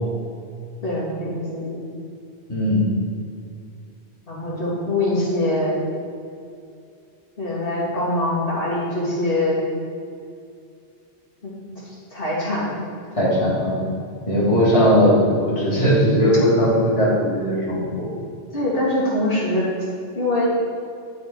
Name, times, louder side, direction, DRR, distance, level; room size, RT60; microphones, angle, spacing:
voice 1, 0.8-1.7 4.3-5.8 7.4-9.6 11.4-11.6 11.8-12.8 14.4-14.5 18.5-19.6 20.1-20.5, left 1 dB, 55° left, -8 dB, 2.9 m, -23 dB
voice 2, 2.5-2.8 13.2-13.8 14.3-15.1 15.5-18.0, equal, 30° left, -8 dB, 2.6 m, -18 dB
12.0 x 7.1 x 4.8 m, 2.4 s
omnidirectional pair, 1.2 m